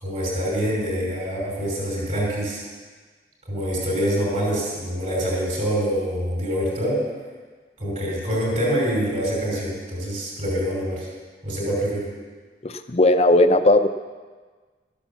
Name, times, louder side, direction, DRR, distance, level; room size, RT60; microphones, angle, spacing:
voice 1, 0.0-2.6 3.5-7.0 7.8-11.1 11.4-12.1, equal, 40° right, -4 dB, 5.2 m, -25 dB
voice 2, 12.6-13.9, left 1 dB, 35° left, 9 dB, 0.6 m, -17 dB
13.5 x 9.9 x 7.2 m, 1.4 s
head